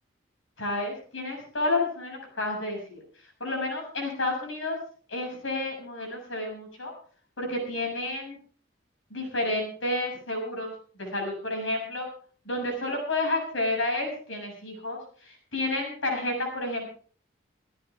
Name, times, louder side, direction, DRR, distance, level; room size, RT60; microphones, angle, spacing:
voice 1, 0.6-3.0 3.4-4.8 5.1-6.9 7.4-8.4 9.1-10.7 11.0-12.1 12.5-16.9, left 2 dB, 80° left, 2 dB, 6.8 m, -30 dB
24.0 x 11.0 x 3.5 m, 0.44 s
head